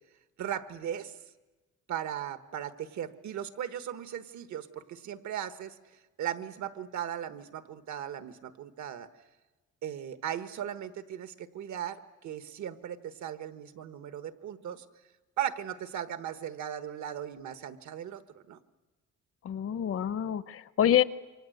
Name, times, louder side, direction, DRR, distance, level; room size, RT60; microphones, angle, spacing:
voice 1, 0.4-1.2 1.9-9.1 9.8-14.8 15.4-18.6, right 10 dB, 70° right, 10 dB, 1.4 m, -37 dB
voice 2, 19.4-21.0, left 10 dB, 50° left, 15 dB, 0.8 m, -26 dB
28.0 x 24.5 x 7.9 m, 1.2 s
cardioid pair, 160°, 30 cm